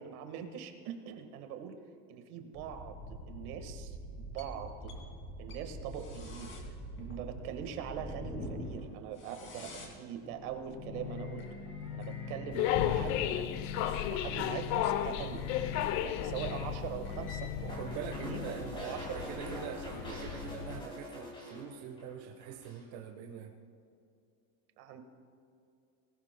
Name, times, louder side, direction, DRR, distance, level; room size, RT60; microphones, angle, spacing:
voice 1, 0.0-1.8 2.1-4.0 4.3-4.9 5.4-6.6 7.0-11.4 11.9-13.5 13.8-15.4 16.0-17.5 18.2-18.4 18.7-20.2 21.5-21.6 24.8-25.0, right 8 dB, 80° right, 7 dB, 1.7 m, -42 dB
sound 1, 2.5-18.5, left 3 dB, 25° left, 2.6 m, -43 dB
sound 2, 12.5-20.8, left 11 dB, 65° left, 0.8 m, -35 dB
voice 2, 17.6-23.6, right 8 dB, 60° right, 2 dB, 1.3 m, -44 dB
sound 3, 17.7-22.1 22.4-22.8, equal, 10° left, 3.4 m, -45 dB
19.5 x 18.0 x 2.2 m, 2.6 s
cardioid pair, 165°, 44 cm